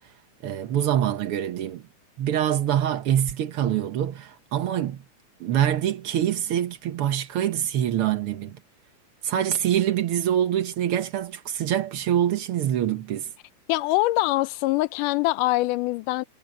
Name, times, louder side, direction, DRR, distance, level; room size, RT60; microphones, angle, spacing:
voice 1, 0.4-1.8 2.2-5.0 5.4-8.6 9.2-13.3, right 10 dB, 65° right, 1.4 m, -25 dB
voice 2, 13.7-16.2, left 19 dB, 85° left, 2.2 m, -23 dB
omnidirectional pair, 3.7 m